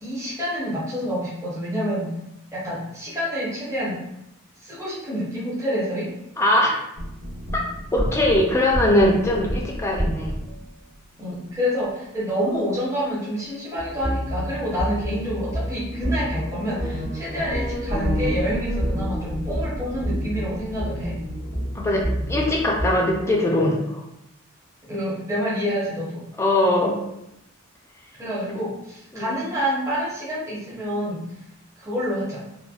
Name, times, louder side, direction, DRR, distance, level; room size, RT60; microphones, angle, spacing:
voice 1, 0.0-2.1 2.5-4.0 4.6-6.1 11.2-21.2 24.9-26.2 28.2-31.2 31.8-32.4, equal, 15° right, -8 dB, 0.8 m, -27 dB
voice 2, 6.4-6.8 7.5-7.6 7.9-10.3 21.7-22.0 22.3-24.0 26.4-26.9 29.1-29.3, left 1 dB, 15° left, -2 dB, 0.4 m, -21 dB
sound 1, 7.0-10.7 13.8-22.9, equal, 70° right, 1.3 m, -28 dB
3.2 x 2.2 x 2.3 m, 0.84 s
head